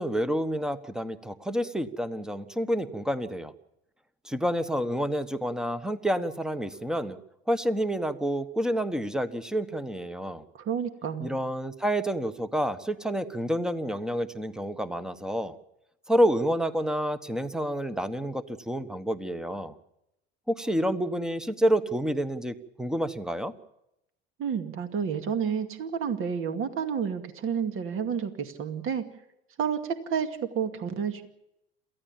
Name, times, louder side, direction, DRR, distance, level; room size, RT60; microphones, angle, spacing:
voice 1, 0.0-3.5 4.2-7.2 7.5-10.4 11.2-15.5 16.1-19.7 20.5-23.5, equal, ahead, 13 dB, 1.3 m, -28 dB
voice 2, 10.5-11.4 24.4-29.0 29.6-31.3, right 7 dB, 40° right, 8 dB, 2.3 m, -30 dB
28.0 x 15.0 x 7.4 m, 0.84 s
hypercardioid pair, 75°, 32 cm